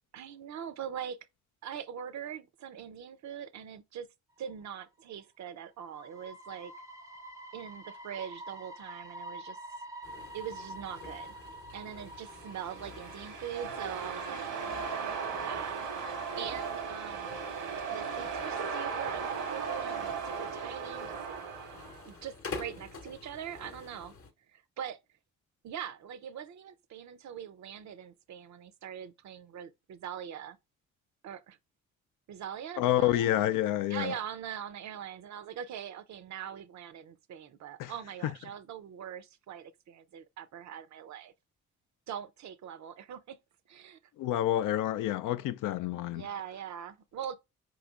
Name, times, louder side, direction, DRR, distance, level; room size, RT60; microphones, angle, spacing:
voice 1, 0.1-1.2 1.6-4.1 4.4-6.7 7.5-9.6 10.3-11.3 11.7-17.4 17.9-21.4 22.1-24.1 24.5-25.0 25.6-30.6 31.2-31.6 32.3-33.3 33.9-41.3 42.1-43.4 43.7-44.0 46.1-47.4, right 9 dB, 55° right, 0.6 m, -42 dB
sound 1, 4.5-4.7 5.2-5.3 5.8-16.0 16.3-16.4 18.8-19.0, right 1 dB, 10° right, 0.5 m, -47 dB
sound 2, 10.0-24.3, left 4 dB, 40° left, 0.8 m, -48 dB
sound 3, 12.3-22.1, right 6 dB, 80° right, 1.2 m, -37 dB
voice 2, 32.8-34.1 37.8-37.9 44.2-46.3, left 13 dB, 65° left, 0.5 m, -28 dB
4.8 x 3.0 x 2.4 m
hypercardioid pair, 45°, 35 cm